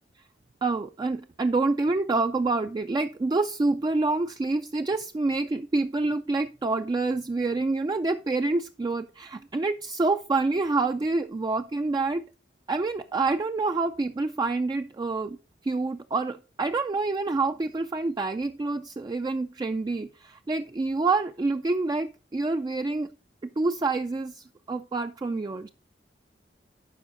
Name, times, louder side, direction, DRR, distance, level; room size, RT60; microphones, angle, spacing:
voice 1, 0.6-12.3 12.7-15.4 15.6-23.1 23.6-25.7, right 3 dB, 25° right, 0.3 m, -27 dB
11.5 x 4.8 x 3.8 m
head